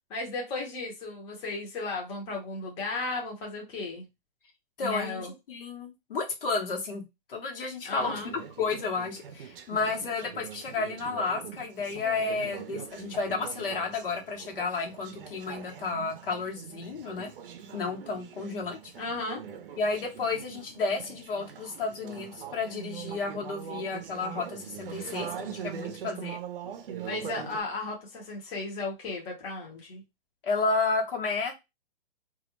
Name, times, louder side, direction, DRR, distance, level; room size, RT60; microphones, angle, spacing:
voice 1, 0.1-4.1 4.8-5.3 7.8-8.3 19.0-19.4 27.0-30.0, left 3 dB, 20° left, -2 dB, 0.7 m, -35 dB
voice 2, 4.8-5.2 5.5-17.3 17.7-18.8 19.8-26.4 30.4-31.5, left 4 dB, 65° left, 1 dB, 1.0 m, -32 dB
Conversation / Chatter, 8.0-27.6, right 8 dB, 65° right, 0.6 m, -42 dB
2.3 x 2.0 x 2.9 m, 0.22 s
hypercardioid pair, 145°, 29 cm